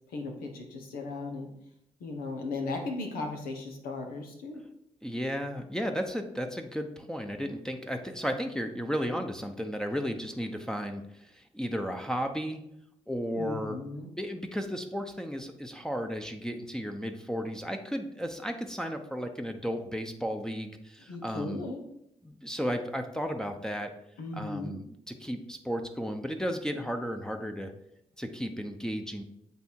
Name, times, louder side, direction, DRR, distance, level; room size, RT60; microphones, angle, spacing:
voice 1, 0.1-1.5 2.0-4.6 13.3-14.1 21.1-21.8 24.2-24.8, left 3 dB, 85° left, 2 dB, 1.0 m, -36 dB
voice 2, 5.0-12.6 13.1-13.8 14.2-21.6 22.2-23.9 24.3-27.7 28.2-29.2, equal, 5° left, 4 dB, 0.8 m, -34 dB
8.0 x 2.7 x 4.6 m, 0.77 s
supercardioid pair, 40°, 15 cm